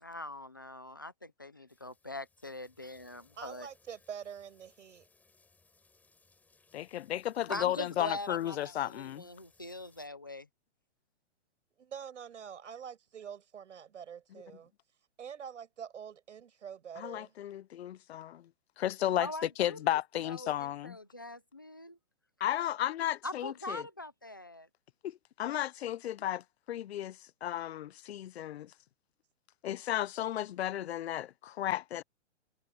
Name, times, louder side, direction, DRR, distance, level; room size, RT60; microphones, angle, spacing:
voice 1, 0.0-3.7 7.5-10.5 19.2-20.5 20.8-22.0 23.2-24.7, left 2 dB, 20° left, 0.3 m, -42 dB
sound 1, 1.7-10.1, left 3 dB, 5° left, 5.5 m, -67 dB
voice 2, 3.4-5.0 11.8-14.7 15.2-17.4, right 8 dB, 90° right, 7.2 m, -46 dB
voice 3, 6.7-9.3 17.0-18.5 18.8-19.3 19.6-21.0 22.4-23.8 25.0-28.7 29.6-32.0, left 12 dB, 65° left, 0.6 m, -34 dB
hypercardioid pair, 175°, 35 cm